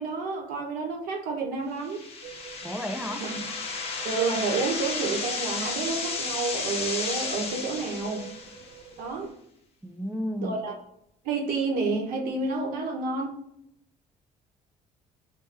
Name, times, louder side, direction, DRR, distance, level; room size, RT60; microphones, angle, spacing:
voice 1, 0.0-2.0 3.2-3.4 4.0-8.2 9.0-9.3 10.4-10.7 11.2-13.4, right 4 dB, 80° right, 1 dB, 1.0 m, -29 dB
sound 1, 1.8-8.8, left 4 dB, 45° left, 0.8 m, -33 dB
sound 2, 2.2-9.3, right 9 dB, 50° right, 0.7 m, -46 dB
voice 2, 2.6-3.3 9.8-10.6, equal, 5° right, 4 dB, 0.3 m, -32 dB
4.2 x 2.2 x 3.3 m, 0.74 s
cardioid pair, 120°, 14 cm